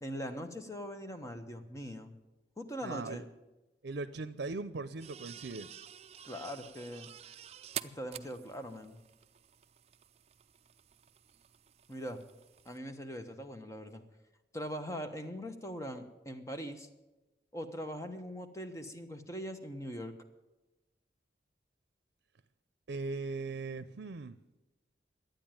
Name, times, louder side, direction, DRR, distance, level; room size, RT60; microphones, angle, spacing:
voice 1, 0.0-2.1 2.6-3.3 6.2-7.1 7.8-9.0 11.9-12.2 12.6-14.0 14.5-16.9 17.5-20.1, equal, 15° left, 7 dB, 1.0 m, -41 dB
voice 2, 2.8-3.2 3.8-5.7 22.9-24.4, right 3 dB, 85° right, 12 dB, 0.6 m, -39 dB
sound 1, 5.0-12.8, right 10 dB, 35° right, 0.4 m, -49 dB
12.0 x 9.1 x 9.0 m, 1.0 s
head